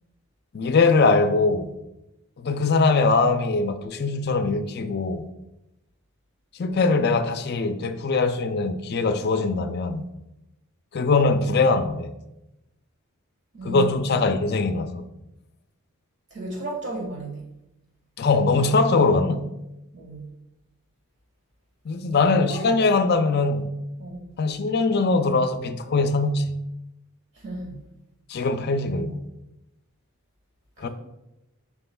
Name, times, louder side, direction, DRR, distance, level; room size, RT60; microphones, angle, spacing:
voice 1, 0.5-1.7 2.4-5.3 6.6-10.1 10.9-12.1 13.6-15.0 18.2-19.4 21.9-23.7 24.4-26.5 28.3-29.2 30.8-30.9, left 3 dB, 45° left, 0.4 m, -22 dB
voice 2, 13.5-14.1 16.3-17.4 19.9-20.3 22.5-22.7 24.0-24.3 27.4-27.7 30.8-30.9, right 1 dB, 55° right, 1.5 m, -33 dB
7.9 x 5.8 x 2.3 m
head